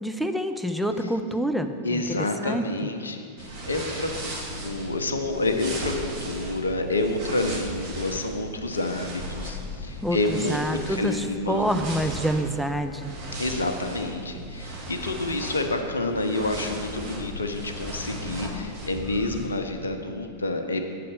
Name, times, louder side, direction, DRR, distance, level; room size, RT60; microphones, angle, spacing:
voice 1, 0.0-2.6 10.0-13.1, equal, ahead, 6 dB, 0.4 m, -27 dB
voice 2, 1.8-11.7 13.4-20.9, left 2 dB, 75° left, 6 dB, 0.6 m, -29 dB
sound 1, 3.4-19.5, right 1 dB, 50° right, 1.5 m, -36 dB
7.5 x 4.1 x 6.6 m, 2.4 s
figure-of-eight pair, 90°, 0 cm